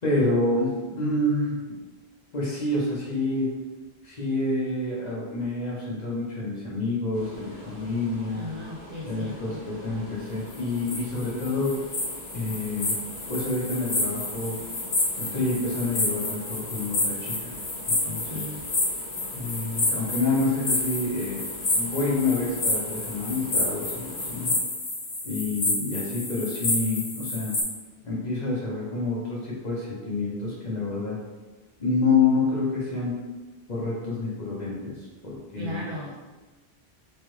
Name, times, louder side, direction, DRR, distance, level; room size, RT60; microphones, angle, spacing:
voice 1, 0.0-1.6 2.3-3.5 4.0-8.4 9.1-11.8 12.3-12.9 13.3-14.6 15.2-17.5 17.9-18.4 19.3-21.4 21.7-24.5 25.2-27.5 28.0-31.2 31.8-33.1 33.7-35.0 35.2-35.8, left 3 dB, 45° left, -5 dB, 1.1 m, -28 dB
sound 1, 7.1-24.6, equal, 20° left, 1.3 m, -44 dB
voice 2, 8.3-9.6 18.0-18.7 35.6-36.2, left 1 dB, 50° right, -4 dB, 0.3 m, -37 dB
sound 2, 10.5-27.6, left 2 dB, 65° left, 1.1 m, -29 dB
3.3 x 3.2 x 3.1 m, 1.2 s
omnidirectional pair, 1.1 m